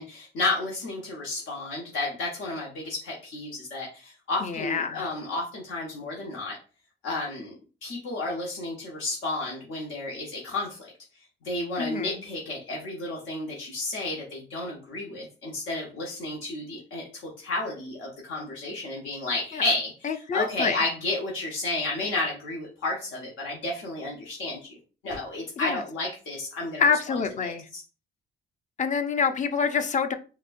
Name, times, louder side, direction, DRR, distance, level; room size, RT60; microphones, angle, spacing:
voice 1, 0.0-6.6 7.0-7.5 7.8-10.9 11.4-24.6 25.0-27.8, left 2 dB, 80° left, -3 dB, 1.0 m, -32 dB
voice 2, 4.4-5.1 11.8-12.2 19.5-19.6 20.0-20.8 25.6-25.8 26.8-27.6 28.8-30.1, left 6 dB, 40° left, 9 dB, 0.5 m, -26 dB
4.0 x 2.2 x 2.5 m, 0.35 s
cardioid pair, 90°, 20 cm